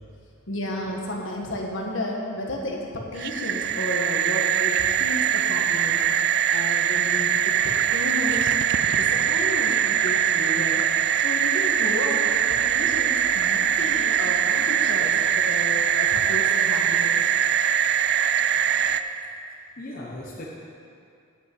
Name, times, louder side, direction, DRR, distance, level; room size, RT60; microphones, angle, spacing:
voice 1, 0.5-6.1 6.5-8.5 8.8-10.8 11.1-17.3, left 1 dB, 60° left, -1 dB, 1.5 m, -32 dB
sound 1, 3.2-19.0, right 9 dB, 50° right, 0.3 m, -22 dB
voice 2, 19.8-20.5, left 1 dB, 40° left, -5 dB, 1.0 m, -38 dB
10.5 x 5.8 x 7.9 m, 2.4 s
head